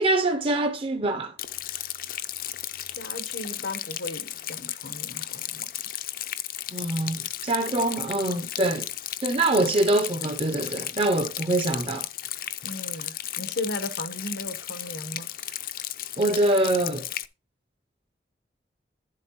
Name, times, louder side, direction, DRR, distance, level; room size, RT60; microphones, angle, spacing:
voice 1, 0.0-1.3 6.7-8.9 9.2-12.1 16.2-17.1, right 2 dB, 30° right, 0.6 m, -24 dB
Rain, 1.4-17.3, left 12 dB, 55° left, 0.5 m, -35 dB
voice 2, 3.0-6.0 12.6-15.3, left 2 dB, 80° left, 1.0 m, -36 dB
11.0 x 7.6 x 3.0 m
head